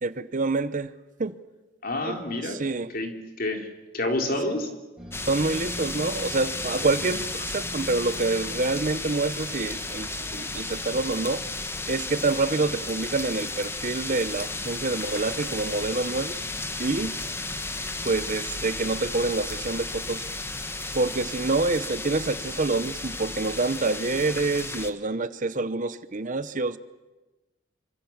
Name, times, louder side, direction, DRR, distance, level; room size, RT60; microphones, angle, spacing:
voice 1, 0.0-0.9 1.2-1.4 2.1-2.2 2.4-2.9 5.3-11.5 11.9-16.3 16.8-17.2 18.0-20.3 20.9-26.8, right 3 dB, 40° right, 0.8 m, -27 dB
voice 2, 1.8-2.6 2.9-3.1 3.4-3.7 3.9-4.7, left 1 dB, 50° left, 3.4 m, -28 dB
sound 1, 5.0-10.5, equal, 5° right, 5.9 m, -43 dB
sound 2, 5.1-24.9, left 2 dB, 10° left, 1.2 m, -34 dB
26.5 x 25.0 x 7.3 m
head